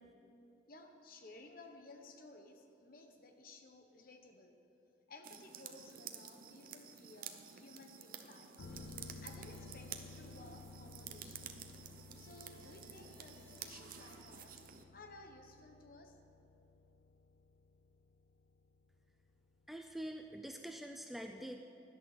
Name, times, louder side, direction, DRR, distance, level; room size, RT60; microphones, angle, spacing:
voice 1, 0.7-4.5 5.1-8.5 9.2-11.7 12.1-14.6 14.9-16.1, left 2 dB, 50° left, 4 dB, 1.2 m, -57 dB
sound 1, 5.2-14.8, right 8 dB, 50° right, 0.7 m, -51 dB
sound 2, 7.5-14.2, right 1 dB, 25° left, 2.3 m, -64 dB
sound 3, 8.6-20.1 20.4-20.5, left 4 dB, 85° left, 0.5 m, -56 dB
voice 2, 19.7-21.6, right 1 dB, ahead, 4 dB, 0.4 m, -45 dB
16.5 x 11.0 x 4.2 m, 2.7 s
head